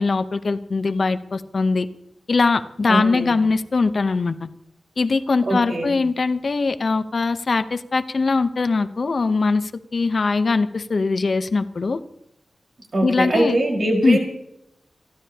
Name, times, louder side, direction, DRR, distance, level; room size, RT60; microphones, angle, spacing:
voice 1, 0.0-1.9 2.3-4.4 5.0-12.0 13.0-13.6 14.0-14.2, left 4 dB, 50° left, 11 dB, 0.8 m, -21 dB
voice 2, 2.9-3.3 5.4-5.9 12.9-14.2, right 1 dB, 50° right, 0 dB, 4.8 m, -22 dB
29.0 x 12.0 x 2.9 m, 0.79 s
wide cardioid pair, 105°, 0 cm